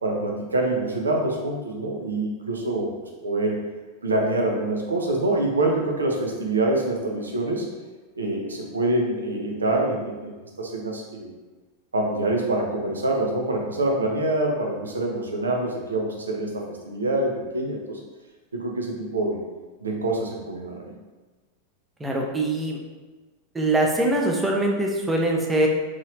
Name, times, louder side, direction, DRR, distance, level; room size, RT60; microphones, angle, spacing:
voice 1, 0.0-2.9 3.2-3.5 4.0-7.7 8.1-11.4 11.9-18.0 18.5-19.4 19.8-20.9, right 2 dB, 75° right, 0 dB, 0.6 m, -25 dB
voice 2, 22.0-22.8 23.5-25.7, right 1 dB, 10° right, 0 dB, 0.6 m, -23 dB
4.0 x 3.0 x 2.5 m, 1.2 s
figure-of-eight pair, 90°, 0 cm